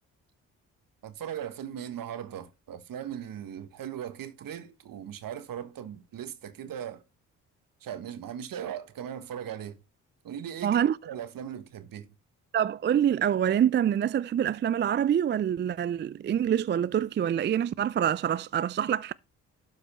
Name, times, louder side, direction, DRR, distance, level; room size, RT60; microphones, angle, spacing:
voice 1, 1.0-7.0 7.8-9.8 10.2-12.1, right 9 dB, 60° right, 1.5 m, -39 dB
voice 2, 10.6-11.0 12.5-19.1, right 9 dB, 30° right, 0.4 m, -26 dB
12.5 x 4.8 x 4.3 m
hypercardioid pair, 50°, 38 cm